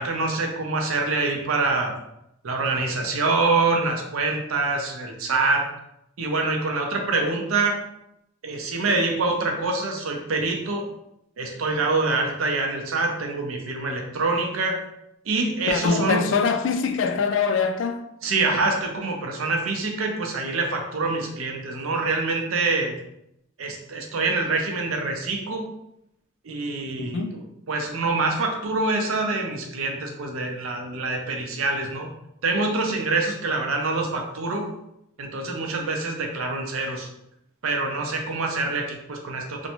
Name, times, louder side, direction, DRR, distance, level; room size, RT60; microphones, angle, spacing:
voice 1, 0.0-2.0 2.4-5.7 6.2-7.8 8.4-10.8 11.4-14.8 15.3-16.2 18.2-22.9 23.6-25.7 26.4-27.2 27.7-32.1 32.4-34.7 35.2-37.1 37.6-39.7, right 3 dB, 90° right, 0.5 m, -25 dB
voice 2, 15.7-18.0 27.0-27.3, left 5 dB, 65° left, 0.3 m, -23 dB
2.6 x 2.1 x 2.9 m
head